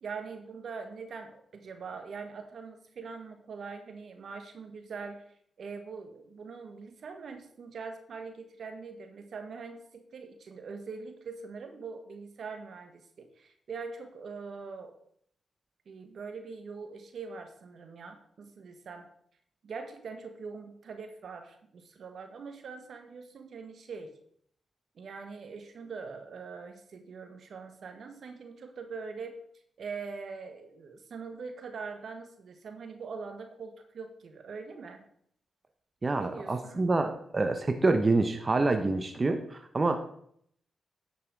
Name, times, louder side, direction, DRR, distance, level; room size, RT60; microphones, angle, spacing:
voice 1, 0.0-15.0 15.8-19.1 19.6-24.1 24.9-29.4 29.8-35.0 36.1-36.9, right 5 dB, 70° right, 7 dB, 1.4 m, -43 dB
voice 2, 36.0-40.0, right 3 dB, 40° right, 7 dB, 1.1 m, -27 dB
10.5 x 6.1 x 4.8 m, 0.65 s
supercardioid pair, 40°, 0 cm